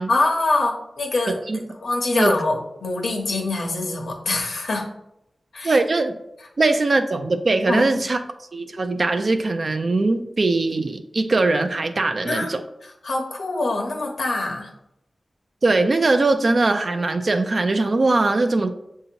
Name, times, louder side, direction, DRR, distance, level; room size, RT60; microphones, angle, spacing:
voice 1, 0.1-1.4 1.8-4.8 5.5-5.8 7.7-8.0 12.2-12.5 13.0-14.7, left 2 dB, 85° left, 1 dB, 0.9 m, -24 dB
voice 2, 5.6-6.1 6.6-8.2 8.5-12.6 15.6-18.7, right 3 dB, 55° right, 7 dB, 0.3 m, -21 dB
6.6 x 2.8 x 2.8 m, 0.82 s
wide cardioid pair, 85°, 0 cm